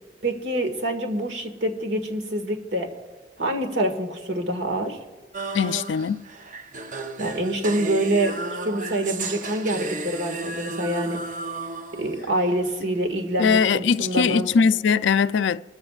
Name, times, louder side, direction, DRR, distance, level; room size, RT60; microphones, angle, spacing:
voice 1, 0.2-2.9 3.4-5.0 7.2-11.2 12.0-14.5, right 1 dB, 80° right, 1.8 m, -26 dB
sound 1, 5.3-12.6, right 3 dB, 45° right, 0.7 m, -33 dB
voice 2, 5.5-6.3 13.4-15.6, left 6 dB, 80° left, 0.4 m, -21 dB
23.5 x 14.0 x 2.4 m
head